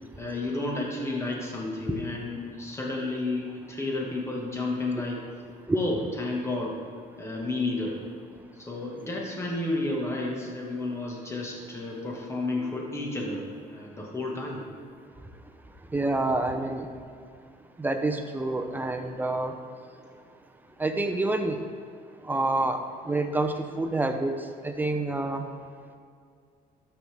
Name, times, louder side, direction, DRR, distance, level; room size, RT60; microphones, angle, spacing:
voice 1, 0.2-5.2 5.7-6.8 7.2-8.0 8.6-14.6, left 2 dB, 15° left, -2 dB, 1.8 m, -31 dB
voice 2, 15.9-16.9 17.8-19.6 20.8-21.6 22.2-24.4 24.6-25.4, right 2 dB, 10° right, 6 dB, 0.7 m, -27 dB
12.5 x 5.6 x 3.6 m, 2.3 s
cardioid pair, 110°, 17 cm